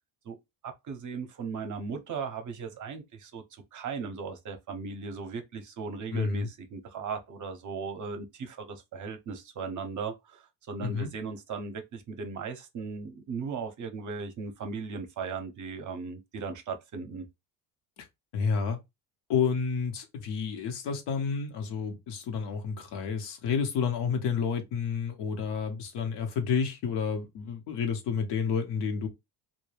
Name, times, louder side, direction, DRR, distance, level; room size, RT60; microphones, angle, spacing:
voice 1, 0.6-17.3, right 5 dB, 40° right, 0.7 m, -37 dB
voice 2, 6.1-6.5 10.8-11.1 18.0-18.1 18.3-18.8 19.3-29.1, left 6 dB, 65° left, 0.9 m, -30 dB
2.2 x 2.1 x 3.2 m
supercardioid pair, 90°, 45 cm